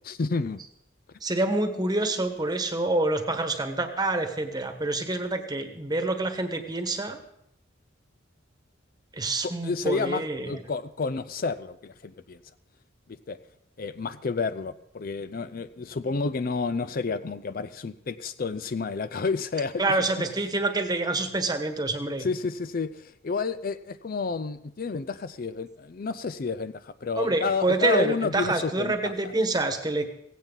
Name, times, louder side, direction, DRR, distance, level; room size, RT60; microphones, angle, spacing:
voice 1, 0.0-0.7 9.4-12.4 13.3-13.4 13.8-19.8 22.2-29.3, left 4 dB, 45° left, 13 dB, 0.5 m, -30 dB
voice 2, 1.2-7.2 9.2-10.5 19.8-22.2 27.2-30.1, right 2 dB, 20° right, 7 dB, 1.3 m, -27 dB
16.5 x 16.0 x 4.0 m, 0.78 s
head